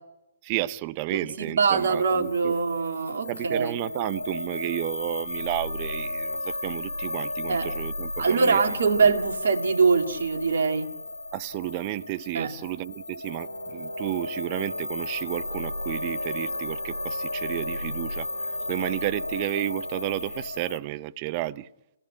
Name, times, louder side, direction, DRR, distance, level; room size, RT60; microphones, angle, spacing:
voice 1, 0.4-2.6 3.3-8.6 9.0-9.1 11.3-21.7, right 17 dB, 35° right, 0.8 m, -32 dB
voice 2, 1.1-3.8 7.5-7.7 8.2-10.9 12.3-12.5, right 5 dB, 65° right, 2.3 m, -23 dB
sound 1, 1.8-20.8, left 2 dB, 90° left, 2.4 m, -34 dB
Brass instrument, 13.2-20.2, right 1 dB, 50° left, 7.8 m, -44 dB
27.0 x 17.5 x 8.8 m
figure-of-eight pair, 130°, 0 cm